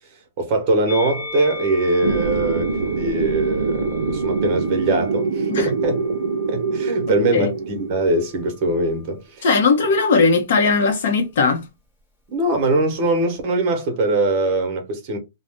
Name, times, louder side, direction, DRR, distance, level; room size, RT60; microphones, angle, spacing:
voice 1, 0.4-6.2 6.5-9.5 12.3-15.2, right 2 dB, 35° right, 0.9 m, -22 dB
Musical instrument, 0.9-7.3 8.1-9.1, left 3 dB, 10° left, 1.0 m, -38 dB
sound 1, 2.0-7.9, right 4 dB, 85° right, 0.4 m, -24 dB
voice 2, 9.4-11.6, left 4 dB, 60° left, 0.6 m, -18 dB
2.5 x 2.0 x 3.4 m
hypercardioid pair, 165°, 0 cm